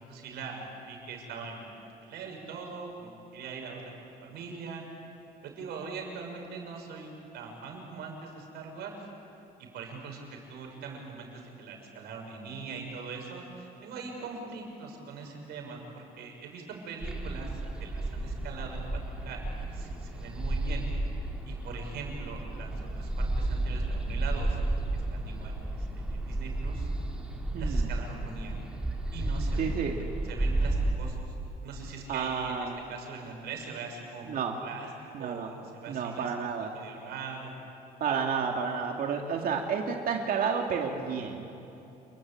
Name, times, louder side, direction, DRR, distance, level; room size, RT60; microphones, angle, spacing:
voice 1, 0.0-1.7 2.0-4.8 5.4-9.1 9.6-20.9 21.4-24.6 24.9-26.9 27.6-28.6 29.1-31.3 31.6-34.3 34.6-34.9 35.2-36.3 36.6-37.6, right 4 dB, 75° right, 2 dB, 6.4 m, -42 dB
sound 1, 17.0-30.9, right 2 dB, 5° right, 4.4 m, -32 dB
voice 2, 27.5-27.9 29.6-30.0 32.1-32.9 34.3-34.6 35.1-35.5 35.9-36.8 38.0-41.5, right 6 dB, 60° right, 2 dB, 2.4 m, -31 dB
28.5 x 21.5 x 8.6 m, 2.9 s
cardioid pair, 110°, 17 cm